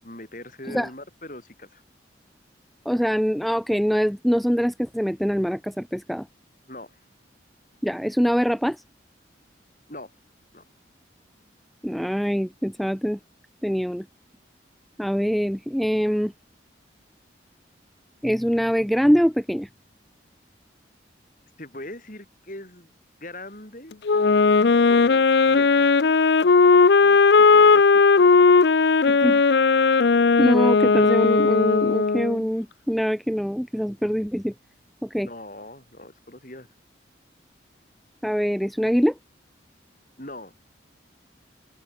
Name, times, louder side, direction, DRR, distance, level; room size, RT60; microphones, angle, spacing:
voice 1, 0.0-1.8 6.7-7.0 9.9-10.1 10.5-10.6 21.6-22.9 23.2-24.0 24.9-25.9 27.0-28.0 35.2-36.7 40.2-40.5, left 1 dB, 45° left, 7.8 m, -41 dB
voice 2, 2.9-6.3 7.8-8.8 11.8-13.2 13.6-14.0 15.0-16.3 18.2-19.7 29.1-29.4 30.4-34.5 35.0-35.3 38.2-39.1, equal, ahead, 0.6 m, -23 dB
Wind instrument woodwind instrument, 24.1-32.4, left 4 dB, 65° left, 0.6 m, -17 dB
open air
head